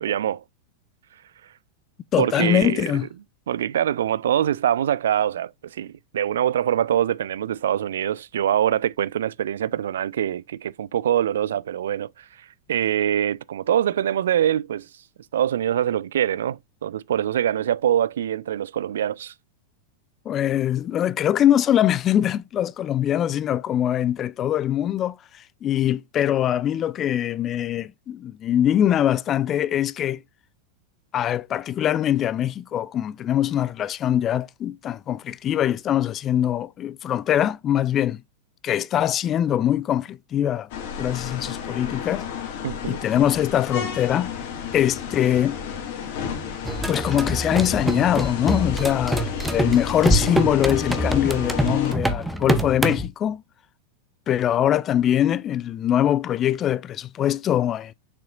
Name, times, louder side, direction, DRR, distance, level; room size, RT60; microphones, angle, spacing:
voice 1, 0.0-0.4 2.2-2.8 3.5-12.2 12.7-14.9 15.3-19.3 42.6-43.0, right 10 dB, 60° right, 0.4 m, -24 dB
voice 2, 2.1-3.1 20.3-30.2 31.1-38.2 38.6-40.7 41.0-42.2 42.9-44.3 44.7-45.6 46.9-53.4 54.3-57.9, left 11 dB, 30° left, 0.4 m, -23 dB
sound 1, 40.7-51.9, left 7 dB, 50° left, 2.1 m, -32 dB
sound 2, 46.7-53.1, right 1 dB, 5° right, 0.9 m, -25 dB
6.8 x 5.6 x 2.4 m
figure-of-eight pair, 90°, 0 cm